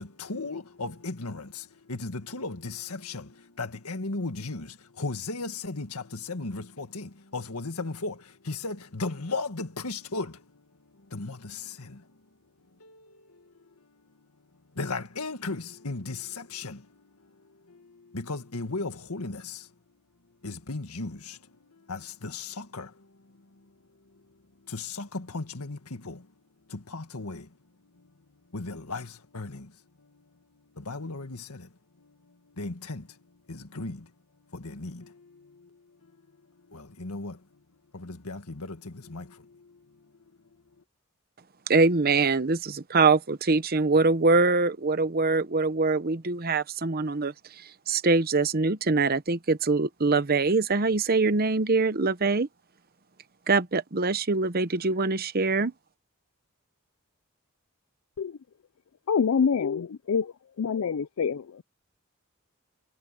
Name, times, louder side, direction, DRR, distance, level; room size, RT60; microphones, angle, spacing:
voice 1, 0.0-12.2 12.7-14.3 14.7-19.7 20.4-23.7 24.1-24.2 24.6-26.3 26.7-27.6 27.9-28.1 28.5-31.7 32.0-34.1 34.5-36.2 36.6-37.6 37.9-40.1, left 3 dB, 90° left, 1.8 m, -37 dB
voice 2, 41.7-52.5 53.5-55.7, right 3 dB, 45° right, 0.9 m, -24 dB
voice 3, 59.1-61.6, left 6 dB, 70° left, 0.4 m, -26 dB
head